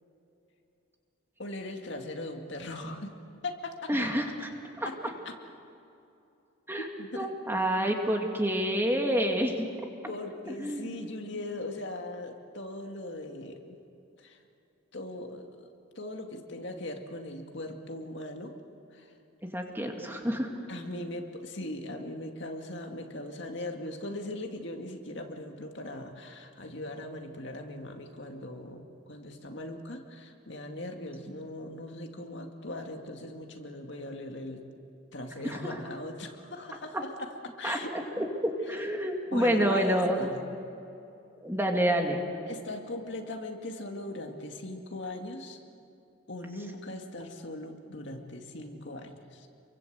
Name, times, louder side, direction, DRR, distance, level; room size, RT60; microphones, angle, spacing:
voice 1, 1.4-3.2 3.4-3.9 4.8-5.0 5.2-5.3 6.8-7.3 10.1-13.8 14.2-14.4 14.9-18.6 18.9-19.1 20.7-34.6 35.1-38.3 38.7-38.8 39.3-40.5 42.5-45.6 46.3-49.5, left 1 dB, 60° left, 3 dB, 2.2 m, -39 dB
voice 2, 3.9-4.5 4.8-4.9 6.7-6.9 7.1-9.7 10.5-10.9 19.5-20.5 31.3-31.4 35.5-35.6 37.6-40.2 41.4-42.2, equal, 10° right, 2 dB, 2.3 m, -28 dB
29.0 x 24.0 x 8.0 m, 2.8 s
head